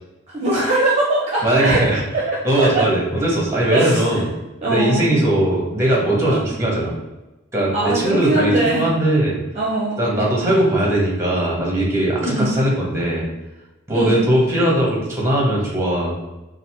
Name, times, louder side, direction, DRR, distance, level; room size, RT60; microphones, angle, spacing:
voice 1, 0.3-1.9 2.1-2.7 3.7-4.2 4.6-5.1 6.3-6.4 7.7-8.9 9.5-10.0 12.2-12.5 13.9-14.2, right 2 dB, 35° right, -5 dB, 0.8 m, -21 dB
voice 2, 1.4-2.0 2.4-4.3 4.6-6.9 7.5-9.3 10.0-13.2 13.9-16.1, right 1 dB, 15° right, -3 dB, 1.4 m, -19 dB
4.0 x 2.6 x 4.4 m, 1.0 s
head